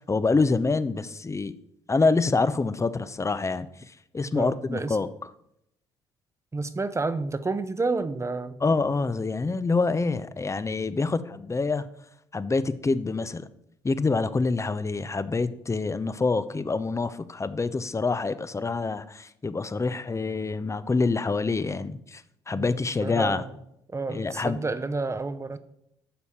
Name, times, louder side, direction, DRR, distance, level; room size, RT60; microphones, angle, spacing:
voice 1, 0.0-1.5 1.9-5.1 8.6-11.9 12.3-13.5 13.8-23.4 24.1-24.6, left 3 dB, 25° left, 14 dB, 0.9 m, -26 dB
voice 2, 4.3-5.0 6.5-8.6 22.6-22.7 23.0-23.6 23.9-25.6, right 3 dB, 25° right, 12 dB, 1.1 m, -30 dB
11.5 x 7.0 x 5.8 m, 0.78 s
hypercardioid pair, 55°, 11 cm